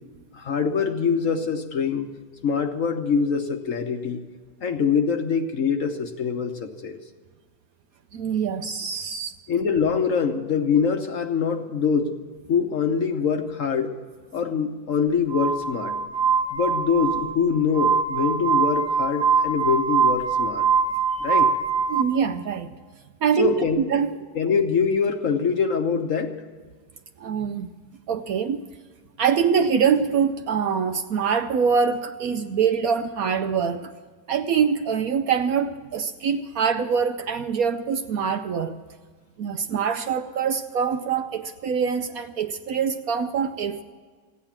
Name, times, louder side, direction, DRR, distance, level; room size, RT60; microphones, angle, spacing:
voice 1, 0.3-2.1 2.4-4.2 4.6-7.0 9.5-12.1 12.5-13.9 14.3-16.0 16.5-20.7 21.2-21.5 23.4-23.8 24.3-26.4, left 6 dB, 55° left, 6 dB, 1.2 m, -24 dB
voice 2, 8.1-9.3 21.9-22.7 23.2-23.5 23.9-24.1 27.2-27.7 28.1-28.6 29.2-33.9 34.3-38.8 39.4-43.8, right 6 dB, 65° right, 8 dB, 1.0 m, -24 dB
Glass, 15.3-22.0, right 5 dB, 40° right, 1.6 m, -23 dB
15.5 x 9.8 x 7.3 m, 1.5 s
omnidirectional pair, 1.9 m